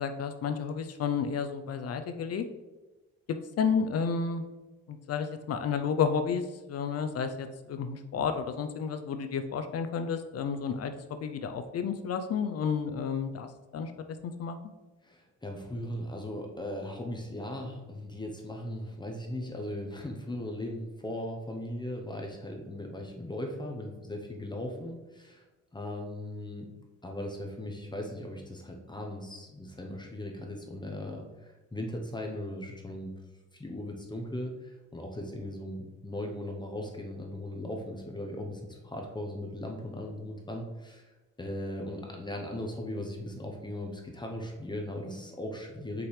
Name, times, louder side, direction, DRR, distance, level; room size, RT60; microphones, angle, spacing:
voice 1, 0.0-2.4 3.3-4.4 4.9-13.9 14.2-14.6, left 6 dB, 55° left, 8 dB, 0.5 m, -31 dB
voice 2, 15.0-25.4 25.7-26.7 27.0-33.1 33.5-41.1 41.4-46.1, left 1 dB, 15° left, 1 dB, 0.9 m, -38 dB
5.8 x 5.1 x 3.3 m, 1.2 s
cardioid pair, 90°, 30 cm